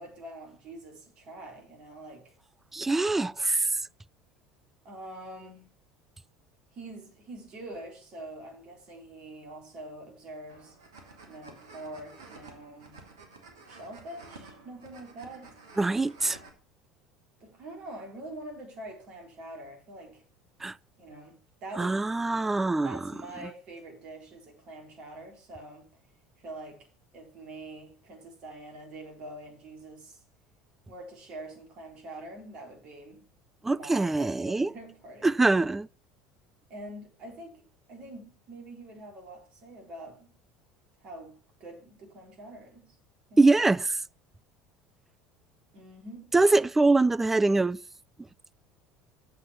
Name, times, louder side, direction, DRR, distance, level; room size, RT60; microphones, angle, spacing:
voice 1, 0.0-2.3 4.8-5.7 6.7-10.8 11.3-13.0 13.7-15.6 17.4-20.2 21.0-22.0 22.8-25.9 26.4-26.8 27.1-30.2 30.9-33.2 33.7-35.4 36.7-40.4 41.0-41.3 41.6-42.9 43.3-43.5 45.7-46.4, right 1 dB, 45° right, 3.7 m, -45 dB
voice 2, 2.7-3.7 15.8-16.4 20.6-20.7 21.8-23.0 33.6-34.7 35.2-35.9 43.4-43.9 46.3-47.8, right 3 dB, 10° right, 0.3 m, -23 dB
sound 1, 10.5-16.5, right 3 dB, 75° right, 2.0 m, -51 dB
7.7 x 5.8 x 7.2 m
figure-of-eight pair, 65°, 2 cm